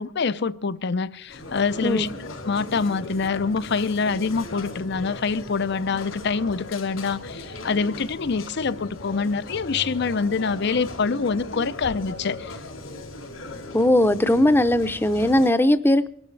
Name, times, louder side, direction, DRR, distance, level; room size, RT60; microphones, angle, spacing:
voice 1, 0.0-2.1 2.5-12.5, left 4 dB, 60° left, 0.6 m, -25 dB
sound 1, 1.3-15.5, left 2 dB, 85° left, 3.9 m, -38 dB
voice 2, 13.7-16.1, left 1 dB, 10° left, 0.7 m, -19 dB
23.5 x 12.5 x 3.3 m
head